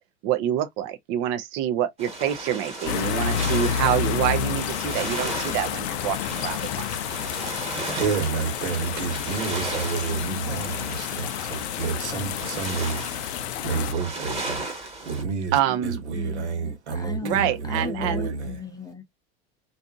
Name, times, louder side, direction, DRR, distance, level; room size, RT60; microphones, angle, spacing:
voice 1, 0.2-6.9 15.5-16.0 17.2-18.3, right 11 dB, 40° right, 0.4 m, -26 dB
sound 1, 2.0-15.2, right 2 dB, 20° right, 1.2 m, -35 dB
sound 2, 2.9-13.9, left 9 dB, 70° left, 0.5 m, -29 dB
voice 2, 7.5-18.6, right 5 dB, 80° right, 1.2 m, -30 dB
voice 3, 16.1-19.0, left 6 dB, 10° left, 0.5 m, -36 dB
2.6 x 2.5 x 2.4 m
hypercardioid pair, 105°, 34 cm